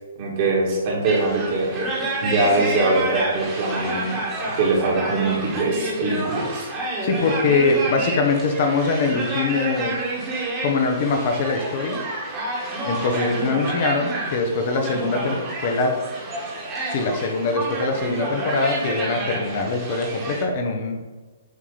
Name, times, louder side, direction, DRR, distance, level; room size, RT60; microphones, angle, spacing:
voice 1, 0.2-1.9 2.2-4.2 4.5-6.7, right 2 dB, 45° right, -2 dB, 1.9 m, -22 dB
sound 1, 1.0-20.4, right 2 dB, 25° right, 1.6 m, -29 dB
voice 2, 7.0-10.0 10.6-12.0 12.8-15.4 15.6-15.9 16.9-21.0, left 3 dB, 50° left, 3 dB, 0.9 m, -23 dB
8.3 x 3.0 x 4.0 m, 1.3 s
figure-of-eight pair, 125°, 0 cm